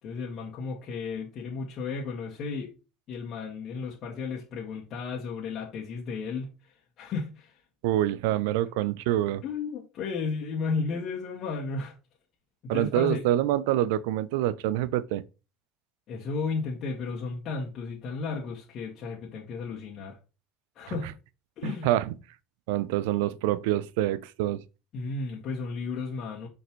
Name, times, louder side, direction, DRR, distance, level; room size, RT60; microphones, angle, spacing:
voice 1, 0.0-2.7 3.1-7.6 9.4-11.9 12.6-13.2 16.1-20.2 20.7-21.1 21.6-21.9 24.9-26.5, left 4 dB, 55° left, 1.7 m, -34 dB
voice 2, 7.8-9.4 12.7-15.2 21.8-22.1 22.7-24.6, right 13 dB, 75° right, 0.5 m, -26 dB
5.9 x 5.2 x 3.1 m
hypercardioid pair, 75°, 0 cm